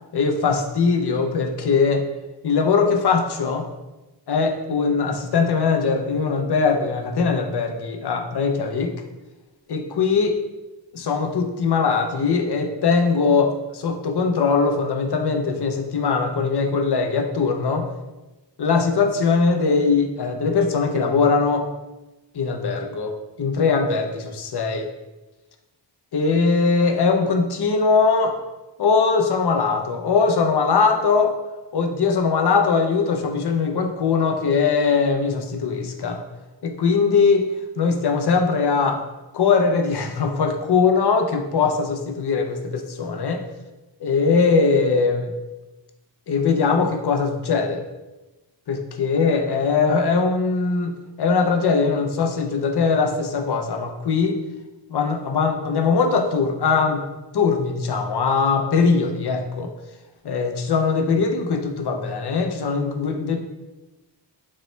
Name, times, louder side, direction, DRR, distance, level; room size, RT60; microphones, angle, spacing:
voice 1, 0.1-2.0 2.4-3.7 4.3-8.9 9.7-10.4 10.9-17.9 18.6-21.7 22.3-23.1 23.4-24.9 26.1-28.3 28.8-31.3 31.7-36.2 36.6-37.5 37.8-39.0 39.3-43.4 44.0-45.3 46.3-47.8 48.7-54.4 54.9-57.0 57.3-59.7 60.2-63.4, left 5 dB, 60° left, 4 dB, 0.6 m, -21 dB
5.2 x 2.1 x 3.1 m, 1.1 s
wide cardioid pair, 70°, 44 cm